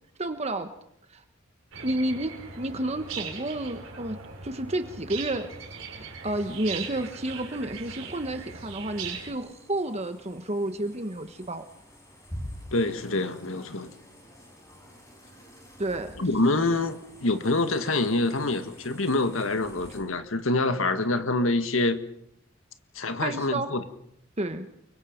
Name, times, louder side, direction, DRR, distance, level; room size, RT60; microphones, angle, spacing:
voice 1, 0.2-0.7 1.1-1.2 1.8-4.2 4.4-5.5 6.2-11.6 15.8-16.3 23.2-23.7 24.4-24.7, right 1 dB, 30° right, 1.3 m, -30 dB
sound 1, 1.7-9.3, right 5 dB, 70° right, 4.5 m, -39 dB
sound 2, 6.2-20.0, equal, 15° left, 6.8 m, -48 dB
voice 2, 12.7-13.9 16.2-22.0 23.0-23.8, left 2 dB, 75° left, 1.8 m, -26 dB
29.5 x 24.0 x 5.3 m
head